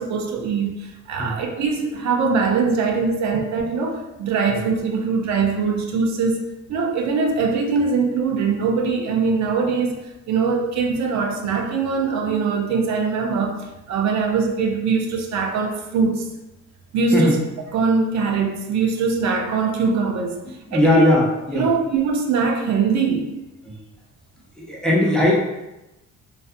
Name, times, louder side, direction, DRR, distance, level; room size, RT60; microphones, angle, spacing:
voice 1, 0.0-6.4 6.7-10.0 10.3-16.3 16.9-17.4 17.7-20.4 20.7-21.1 21.5-23.3, right 5 dB, 65° right, 2 dB, 0.5 m, -22 dB
voice 2, 20.7-21.7 23.7-23.8 24.6-25.3, left 1 dB, ahead, -4 dB, 0.6 m, -19 dB
2.6 x 2.3 x 2.4 m, 0.98 s
cardioid pair, 90°, 30 cm